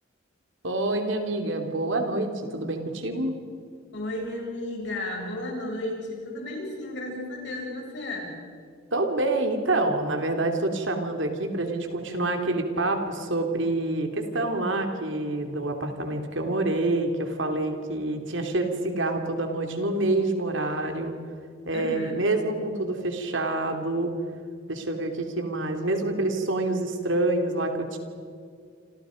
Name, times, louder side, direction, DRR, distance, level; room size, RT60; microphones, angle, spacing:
voice 1, 0.6-3.4 8.9-21.1 21.6-24.1 24.7-28.0, right 2 dB, 70° right, 4 dB, 3.2 m, -27 dB
voice 2, 3.9-8.3 21.7-22.2, left 1 dB, 60° left, -1 dB, 7.7 m, -33 dB
28.5 x 28.0 x 5.3 m, 2.2 s
head